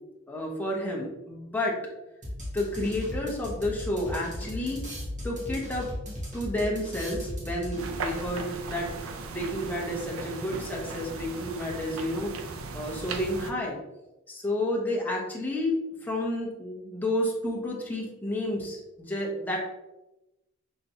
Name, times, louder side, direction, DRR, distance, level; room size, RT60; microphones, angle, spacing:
voice 1, 0.3-1.8 2.5-4.8 5.2-5.9 6.3-12.3 12.7-13.8 14.3-19.6, left 1 dB, 10° left, -3 dB, 0.9 m, -31 dB
sound 1, 2.2-8.1, left 1 dB, 35° right, 1.2 m, -37 dB
sound 2, 7.8-13.5, right 3 dB, 80° right, 0.5 m, -37 dB
5.9 x 3.1 x 2.6 m, 0.97 s
head